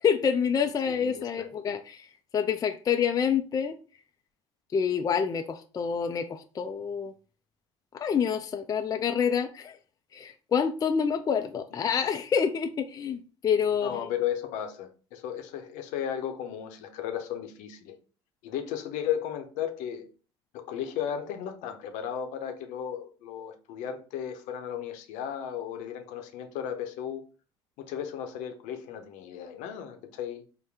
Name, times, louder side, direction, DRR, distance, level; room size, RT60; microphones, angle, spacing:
voice 1, 0.0-2.1 2.3-3.8 4.7-7.1 7.9-9.8 10.1-14.1, left 7 dB, 25° left, 0.4 m, -27 dB
voice 2, 0.9-1.8 13.7-17.9 18.4-20.1 20.5-27.3 27.8-30.5, left 9 dB, 65° left, 0.7 m, -35 dB
4.1 x 2.1 x 3.4 m
hypercardioid pair, 65°, 14 cm